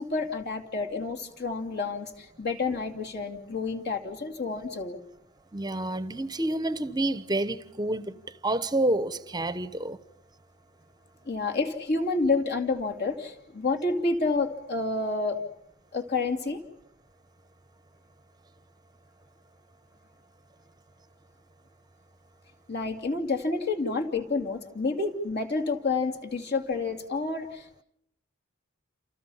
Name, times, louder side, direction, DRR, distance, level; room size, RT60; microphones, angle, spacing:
voice 1, 0.0-5.0 11.3-15.4 15.9-16.6 22.7-27.8, left 3 dB, 55° left, 2.7 m, -29 dB
voice 2, 5.5-8.2 8.4-10.0, right 1 dB, 20° right, 0.9 m, -28 dB
29.0 x 28.5 x 5.7 m
head